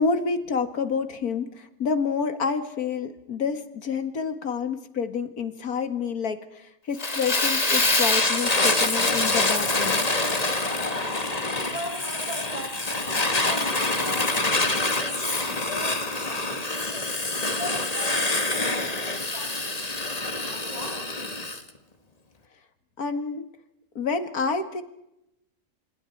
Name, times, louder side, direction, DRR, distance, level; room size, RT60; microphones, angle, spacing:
voice 1, 0.0-10.1 23.0-23.4 24.0-24.8, left 5 dB, 85° left, 9 dB, 2.3 m, -28 dB
Fire, 7.0-21.6, left 2 dB, 25° left, 2.0 m, -25 dB
voice 2, 11.4-17.1 17.6-21.1, equal, 25° right, 0 dB, 8.0 m, -39 dB
29.5 x 28.0 x 4.6 m, 0.85 s
omnidirectional pair, 1.5 m